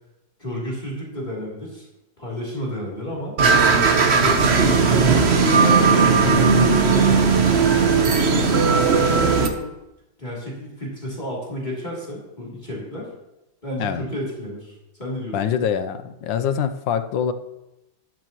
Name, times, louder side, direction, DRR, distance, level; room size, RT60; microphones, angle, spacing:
voice 1, 0.4-1.9 2.2-3.4 3.8-7.4 8.1-9.7 10.2-13.1 13.6-15.4, equal, 25° left, -5 dB, 3.2 m, -31 dB
sound 1, 3.4-9.5, right 5 dB, 45° right, 1.0 m, -17 dB
voice 2, 15.3-17.3, left 8 dB, 85° left, 10 dB, 1.5 m, -24 dB
13.5 x 11.5 x 3.0 m, 0.93 s
omnidirectional pair, 2.0 m